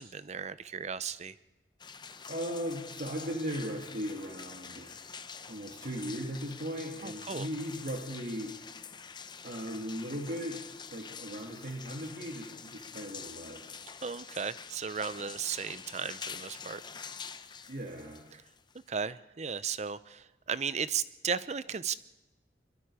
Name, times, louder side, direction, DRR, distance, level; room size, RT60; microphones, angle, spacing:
voice 1, 0.0-1.3 7.0-7.5 14.0-16.8 18.9-21.9, right 6 dB, 40° right, 15 dB, 0.6 m, -35 dB
sound 1, 1.8-19.0, left 6 dB, 25° left, 0.7 m, -46 dB
voice 2, 2.3-8.9 9.4-10.6 10.9-13.7 17.7-18.2, equal, 55° right, 0 dB, 2.6 m, -38 dB
25.0 x 22.5 x 4.9 m, 1.0 s
head